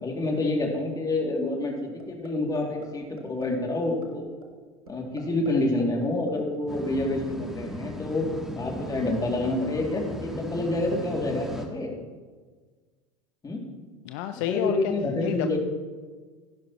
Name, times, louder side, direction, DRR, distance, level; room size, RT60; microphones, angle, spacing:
voice 1, 0.0-4.3 4.9-8.2 8.6-11.9 13.4-13.6 14.4-15.6, left 2 dB, 20° left, 0 dB, 2.6 m, -28 dB
sound 1, 2.0-2.3 2.5-2.9 3.2-3.4 3.8-4.1 4.4-4.5 4.9-5.5 5.8-6.8, right 4 dB, 90° right, 1.4 m, -44 dB
sound 2, 6.7-11.7, equal, ahead, 1.5 m, -37 dB
voice 2, 14.0-14.9 15.2-15.6, left 12 dB, 60° left, 8 dB, 0.6 m, -29 dB
16.0 x 11.0 x 3.0 m, 1.4 s
hypercardioid pair, 80°, 18 cm